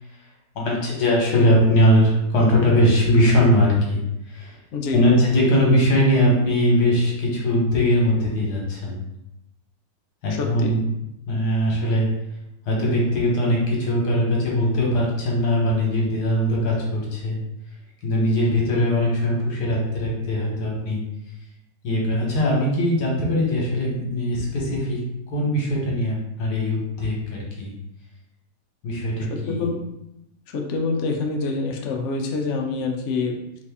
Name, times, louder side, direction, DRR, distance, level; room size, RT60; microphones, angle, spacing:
voice 1, 0.5-4.0 4.3-4.6 4.9-9.0 10.2-10.9 11.3-12.1 12.7-17.4 18.0-21.0 21.8-27.7 28.8-29.6, left 1 dB, 70° left, -2 dB, 1.5 m, -20 dB
voice 2, 4.7-5.0 10.3-10.7 29.3-29.8 30.5-33.4, left 4 dB, 90° left, 1 dB, 0.6 m, -26 dB
3.2 x 2.6 x 3.4 m, 0.86 s
omnidirectional pair, 1.9 m